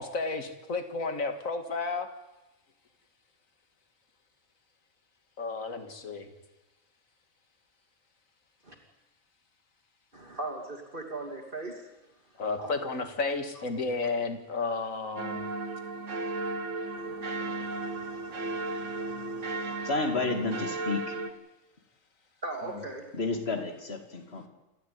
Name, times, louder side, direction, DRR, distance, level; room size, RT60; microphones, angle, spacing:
voice 1, 0.0-2.1 5.4-6.3 12.4-15.4, left 3 dB, 70° left, 8 dB, 2.4 m, -32 dB
voice 2, 10.1-11.9 12.6-12.7 13.5-13.6 16.9-19.9 22.4-23.1, right 2 dB, 40° right, 2 dB, 3.0 m, -41 dB
sound 1, 15.2-21.3, right 2 dB, 60° right, 1.7 m, -35 dB
voice 3, 19.6-21.2 23.1-24.5, left 3 dB, 45° left, 6 dB, 2.7 m, -31 dB
28.5 x 13.0 x 9.5 m, 0.99 s
omnidirectional pair, 1.5 m